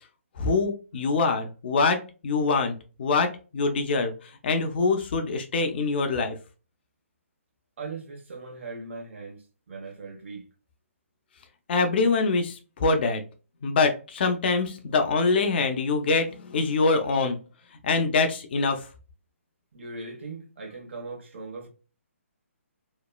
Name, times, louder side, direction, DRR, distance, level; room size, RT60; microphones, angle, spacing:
voice 1, 0.4-6.4 11.7-13.2 13.6-17.4 17.8-18.9, left 4 dB, 45° left, 0.5 m, -24 dB
voice 2, 7.8-10.5 19.7-21.7, right 3 dB, 60° right, 1.1 m, -39 dB
3.0 x 2.1 x 2.3 m
hypercardioid pair, 145°, 8 cm